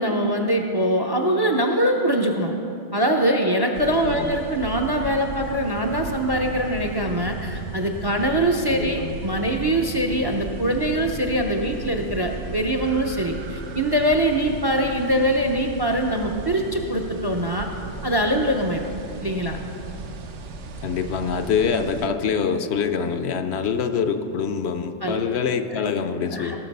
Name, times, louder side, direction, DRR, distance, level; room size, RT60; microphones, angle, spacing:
voice 1, 0.0-2.5 2.9-17.7 18.0-18.9 19.2-19.6 25.0-25.2 25.7-25.9 26.3-26.6, right 1 dB, 30° right, 3 dB, 0.5 m, -23 dB
sound 1, 3.7-22.1, right 3 dB, 75° right, 1.1 m, -36 dB
voice 2, 8.7-9.1 20.8-26.6, left 6 dB, 70° left, 8 dB, 0.8 m, -25 dB
17.5 x 6.3 x 5.3 m, 2.8 s
omnidirectional pair, 1.2 m